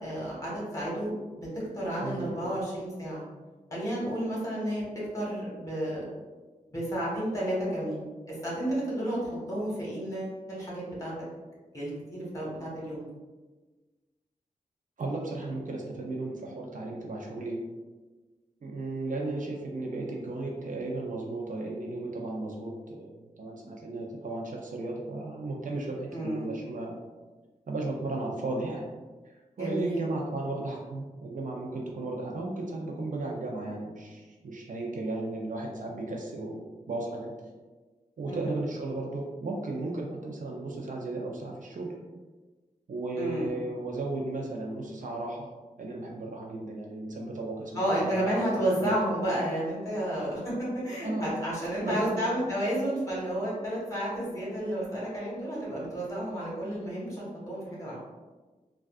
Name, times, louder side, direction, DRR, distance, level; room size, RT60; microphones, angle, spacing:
voice 1, 0.0-1.5 1.7-3.2 3.7-4.8 5.1-6.0 6.7-11.1 11.7-13.1 26.1-26.5 29.6-30.0 38.3-38.5 43.1-43.5 47.7-57.9, right 1 dB, 25° left, -6 dB, 1.4 m, -31 dB
voice 2, 2.0-2.4 15.0-17.7 18.6-27.0 27.7-28.8 29.2-37.3 38.2-42.0 42.9-45.5 45.8-48.2 48.5-48.9 51.0-51.4 51.8-52.3, right 2 dB, 65° right, -1 dB, 0.5 m, -35 dB
3.4 x 2.3 x 2.3 m, 1.3 s
wide cardioid pair, 75°, 14 cm